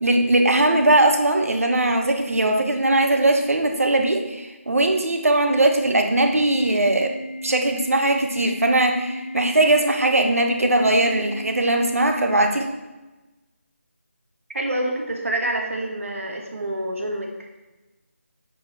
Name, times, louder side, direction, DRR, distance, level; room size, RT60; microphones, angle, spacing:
voice 1, 0.0-7.1 7.4-12.7, right 2 dB, 85° right, 4 dB, 1.2 m, -20 dB
Organ, 6.3-12.3, left 1 dB, 5° right, 0.4 m, -36 dB
voice 2, 14.5-17.5, right 1 dB, 70° right, 1 dB, 1.5 m, -27 dB
7.3 x 5.4 x 4.1 m, 1.1 s
figure-of-eight pair, 175°, 7 cm